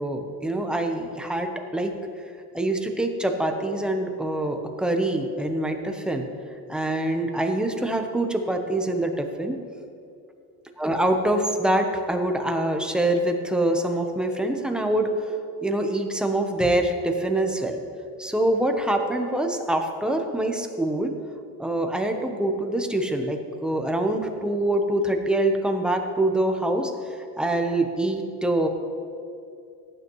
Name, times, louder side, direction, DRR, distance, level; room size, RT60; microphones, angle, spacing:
voice 1, 0.0-1.9 2.5-6.3 6.7-9.6 10.8-15.1 15.6-17.8 18.2-21.1 21.6-28.7, right 1 dB, ahead, 4 dB, 0.7 m, -25 dB
17.5 x 9.3 x 3.1 m, 2.5 s
cardioid pair, 150°, 35 cm